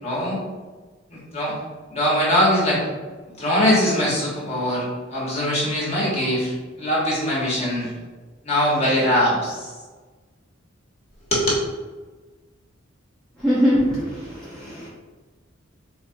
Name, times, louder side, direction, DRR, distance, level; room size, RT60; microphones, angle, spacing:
voice 1, 0.0-0.4 1.1-1.5 1.9-2.8 3.4-7.9 8.4-9.7 11.3-11.6, equal, 30° left, -6 dB, 1.2 m, -22 dB
voice 2, 13.4-14.9, equal, 5° left, -11 dB, 0.6 m, -22 dB
4.0 x 2.3 x 2.7 m, 1.3 s
head